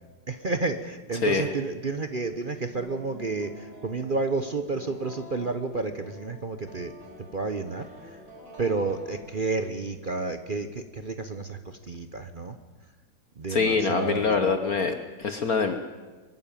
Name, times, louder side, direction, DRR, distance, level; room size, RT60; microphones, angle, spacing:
voice 1, 0.3-6.9 7.3-8.2 8.6-12.6 13.4-14.5, right 3 dB, 45° right, 8 dB, 0.6 m, -31 dB
voice 2, 1.1-1.5 13.5-15.7, left 5 dB, 50° left, 8 dB, 1.4 m, -25 dB
sound 1, 2.7-9.8, equal, 70° right, 6.0 m, -47 dB
23.0 x 13.5 x 9.0 m, 1.3 s
omnidirectional pair, 2.2 m